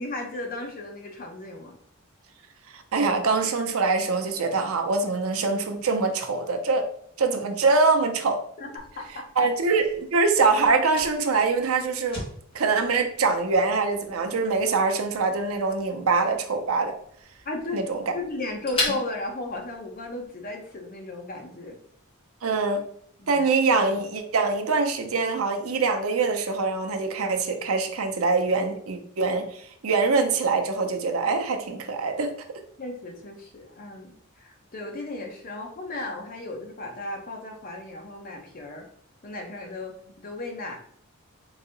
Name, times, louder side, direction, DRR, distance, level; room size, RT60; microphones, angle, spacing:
voice 1, 0.0-1.8 8.6-9.5 17.4-17.8 18.1-21.8 22.5-22.6 23.2-23.4 32.8-38.9 39.2-40.8, left 2 dB, 40° left, 2 dB, 0.8 m, -35 dB
voice 2, 2.7-6.9 7.2-8.4 9.4-12.2 12.5-16.9 17.7-18.0 22.4-22.8 23.3-32.3, right 4 dB, 80° right, 5 dB, 0.6 m, -24 dB
Fire, 8.8-20.3, left 1 dB, 25° left, 1.5 m, -39 dB
3.9 x 2.8 x 3.9 m, 0.63 s
head